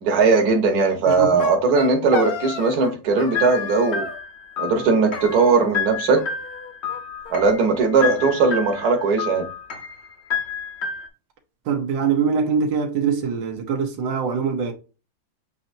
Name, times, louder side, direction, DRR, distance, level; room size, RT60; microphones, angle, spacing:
voice 1, 0.0-4.1 4.6-6.2 7.3-9.5, right 4 dB, 55° right, 1.5 m, -19 dB
sound 1, 1.0-2.9 3.2-4.2 5.1-5.9 6.2-7.0 7.2-7.3 7.6-7.7 8.0-9.0, left 5 dB, 85° left, 0.5 m, -34 dB
voice 2, 1.1-1.4 11.7-14.7, right 6 dB, 80° right, 1.6 m, -23 dB
sound 2, 3.3-11.1, left 6 dB, 45° left, 0.9 m, -30 dB
7.5 x 2.8 x 2.6 m
omnidirectional pair, 2.0 m